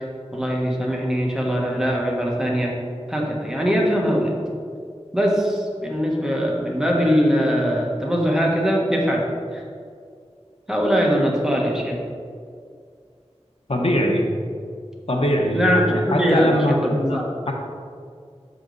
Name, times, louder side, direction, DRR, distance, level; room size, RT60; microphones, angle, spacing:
voice 1, 0.3-2.7 3.1-4.3 5.1-9.3 9.5-9.6 10.7-12.0 15.5-17.3, equal, 5° right, -2 dB, 1.3 m, -21 dB
voice 2, 13.7-14.2 15.1-17.2 17.5-17.6, equal, 60° left, 1 dB, 1.0 m, -21 dB
7.1 x 5.1 x 4.0 m, 2.2 s
wide cardioid pair, 50°, 11 cm